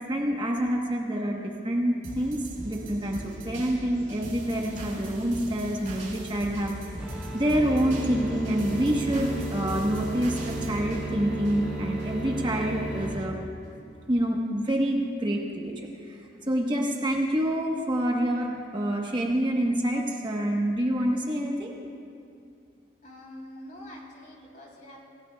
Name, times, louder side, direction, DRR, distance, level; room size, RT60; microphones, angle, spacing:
voice 1, 0.0-6.8 7.3-13.4 14.1-21.8, right 1 dB, 25° right, -1 dB, 1.0 m, -27 dB
sound 1, 2.0-12.1 12.5-12.6, right 1 dB, 40° right, 4.3 m, -40 dB
sound 2, 7.0-13.1, right 1 dB, 5° right, 2.5 m, -33 dB
voice 2, 23.0-25.1, left 1 dB, 45° left, -3 dB, 3.1 m, -45 dB
26.5 x 16.0 x 2.3 m, 2.5 s
head